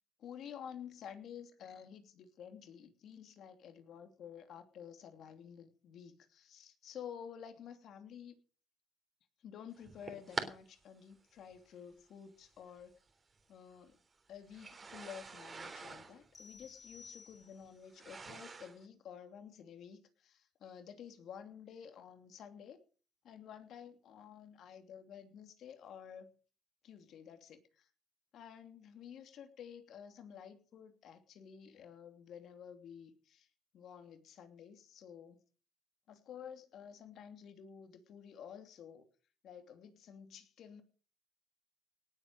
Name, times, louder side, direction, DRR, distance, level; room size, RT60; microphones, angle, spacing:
voice 1, 0.2-8.4 9.4-12.9 13.5-14.0 14.3-22.8 23.2-26.3 26.8-27.9 28.3-33.5 33.7-35.4 36.1-39.0 39.4-40.8, left 8 dB, 75° left, 7 dB, 2.8 m, -51 dB
sound 1, 9.8-10.5 11.5-11.6 12.8-12.9 14.5-18.8, right 4 dB, 35° right, 3.4 m, -45 dB
sound 2, 16.3-17.9, left 5 dB, 40° left, 3.2 m, -56 dB
18.5 x 8.4 x 6.4 m, 0.39 s
cardioid pair, 90°, 0 cm